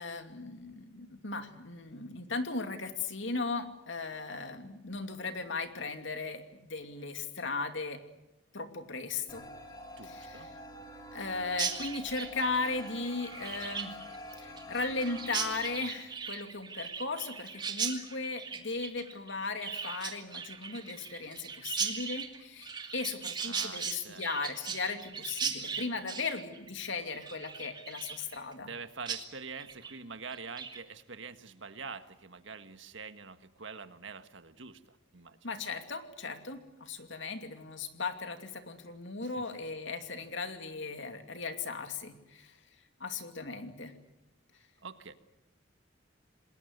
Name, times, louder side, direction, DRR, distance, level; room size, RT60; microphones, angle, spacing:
voice 1, 0.0-8.0 8.5-9.5 10.0-10.4 11.1-13.9 14.4-28.7 35.4-42.5 43.0-43.9, left 3 dB, 70° left, 7 dB, 2.6 m, -37 dB
sound 1, 9.3-15.8, equal, 20° left, 2.9 m, -47 dB
voice 2, 10.0-10.5 23.4-24.2 28.6-35.4 39.2-39.5 44.8-45.1, right 5 dB, 70° right, 10 dB, 1.5 m, -45 dB
Chirp tweet, 11.5-28.8 29.1-29.2 29.5-29.9 30.3-30.8, right 5 dB, 20° right, 2.5 m, -38 dB
28.0 x 20.5 x 8.1 m, 0.95 s
head